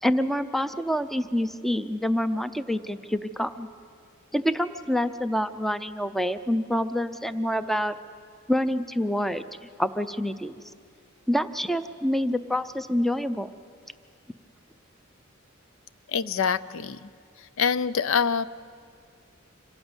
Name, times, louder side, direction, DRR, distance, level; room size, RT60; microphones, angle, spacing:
voice 1, 0.0-3.7 4.3-7.9 8.5-9.4 9.8-10.5 11.3-13.5, equal, ahead, 12 dB, 0.5 m, -27 dB
voice 2, 16.1-17.1 17.6-18.4, left 6 dB, 70° left, 16 dB, 0.5 m, -25 dB
26.0 x 17.0 x 8.1 m, 2.2 s
head